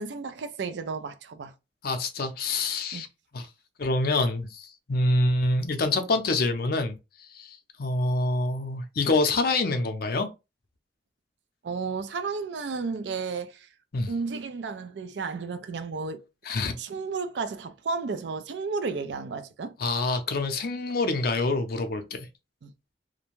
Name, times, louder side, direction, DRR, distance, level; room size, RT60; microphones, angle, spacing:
voice 1, 0.0-1.5 2.9-3.0 11.6-13.7 14.1-16.2 16.8-19.8 22.6-22.7, right 4 dB, 70° right, 0.4 m, -33 dB
voice 2, 1.8-3.1 3.3-3.5 3.8-7.0 7.3-10.3 13.9-14.1 16.5-16.8 19.8-22.3, left 2 dB, 55° left, 0.5 m, -26 dB
2.5 x 2.2 x 3.0 m
head